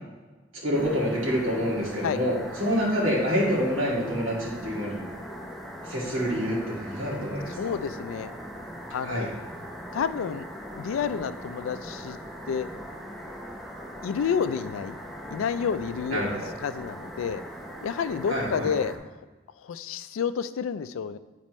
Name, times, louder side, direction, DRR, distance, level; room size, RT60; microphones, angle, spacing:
voice 1, 0.6-5.0 5.8-7.7 9.0-9.3 16.1-16.3 18.3-18.7, equal, 80° right, -5 dB, 2.2 m, -27 dB
sound 1, 0.7-19.0, equal, ahead, 0.6 m, -40 dB
voice 2, 7.6-8.3 8.9-9.3 9.9-10.5 10.8-12.2 12.5-12.7 14.0-15.0 15.3-17.4 17.8-18.9 19.6-21.2, left 7 dB, 80° left, 14 dB, 0.3 m, -29 dB
8.9 x 4.2 x 3.1 m, 1.2 s
head